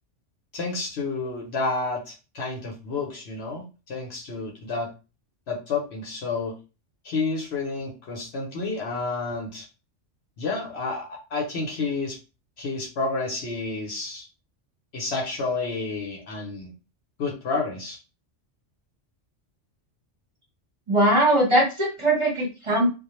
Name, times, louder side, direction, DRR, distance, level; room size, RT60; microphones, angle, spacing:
voice 1, 0.5-4.9 5.5-6.6 7.0-9.7 10.4-12.2 12.6-14.3 14.9-16.7 17.2-18.0, left 3 dB, 60° left, -1 dB, 0.9 m, -30 dB
voice 2, 20.9-22.9, right 1 dB, 25° right, -4 dB, 1.0 m, -20 dB
2.3 x 2.1 x 3.0 m, 0.30 s
omnidirectional pair, 1.3 m